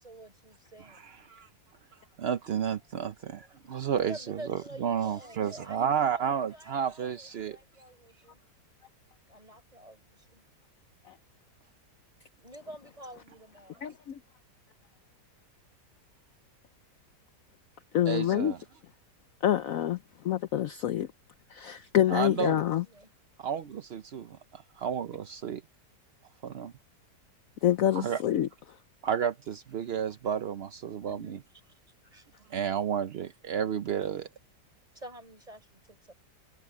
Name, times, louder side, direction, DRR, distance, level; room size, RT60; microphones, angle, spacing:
voice 1, 0.0-1.2 3.4-8.4 9.3-10.4 12.4-14.0 22.7-23.1 30.2-30.4 31.0-31.4 31.6-32.3 34.9-36.1, right 1 dB, 20° right, 5.2 m, -49 dB
voice 2, 0.9-1.5 2.2-7.6 18.1-18.6 22.1-22.6 23.4-25.6 26.4-26.7 27.9-28.2 29.0-31.4 32.5-34.3, right 8 dB, 60° right, 0.7 m, -32 dB
voice 3, 13.8-14.2 17.9-18.5 19.4-20.0 20.2-21.1 21.5-22.8 27.6-28.5, left 11 dB, 65° left, 0.9 m, -26 dB
omnidirectional pair, 1.8 m